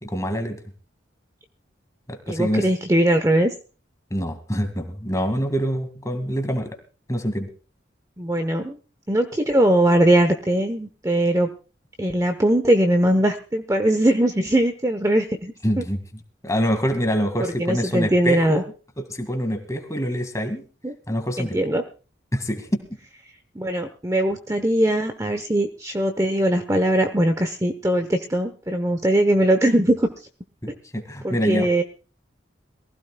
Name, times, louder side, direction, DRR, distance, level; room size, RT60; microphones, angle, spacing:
voice 1, 0.0-0.6 2.1-2.7 4.1-6.8 7.1-7.5 15.6-16.0 16.4-18.6 19.0-20.6 21.1-21.6 22.3-22.8 30.6-31.7, equal, 15° left, 7 dB, 2.0 m, -25 dB
voice 2, 2.3-3.5 8.2-8.8 9.1-11.5 12.0-15.8 17.6-18.6 20.8-20.9 21.4-21.8 23.5-30.1 31.2-31.8, right 1 dB, 15° right, 7 dB, 0.9 m, -20 dB
22.5 x 15.5 x 2.3 m, 0.35 s
head